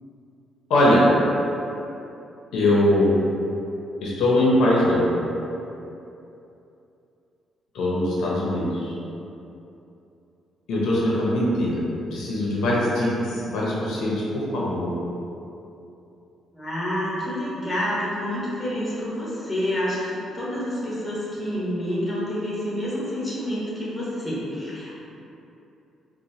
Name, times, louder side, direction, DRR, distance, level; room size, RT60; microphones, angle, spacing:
voice 1, 0.7-1.0 2.5-3.2 4.0-5.0 7.7-8.9 10.7-11.8 12.1-14.9, left 1 dB, 85° left, -6 dB, 0.6 m, -21 dB
voice 2, 16.5-24.9, equal, 15° left, -8 dB, 1.1 m, -28 dB
4.1 x 2.1 x 2.7 m, 2.8 s
cardioid pair, 90°, 0 cm